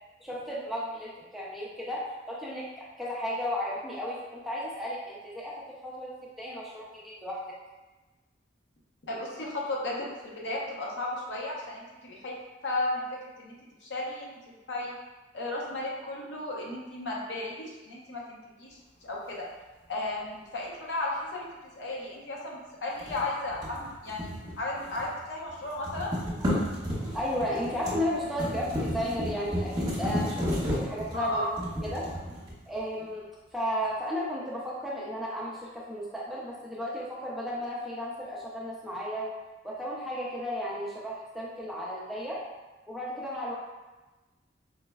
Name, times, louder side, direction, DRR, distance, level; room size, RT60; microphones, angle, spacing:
voice 1, 0.2-7.4 27.1-31.4 31.8-32.1 32.7-33.2 33.5-39.3 39.6-42.4 42.9-43.6, equal, ahead, -6 dB, 0.4 m, -34 dB
voice 2, 9.1-12.4 12.6-13.0 13.4-14.9 15.3-19.5 19.9-21.5 21.8-26.1 31.1-31.5, left 2 dB, 70° left, -4 dB, 0.7 m, -34 dB
sound 1, 23.0-25.2 25.5-32.8, equal, 20° right, 1.1 m, -33 dB
4.7 x 2.1 x 2.2 m, 1.2 s
head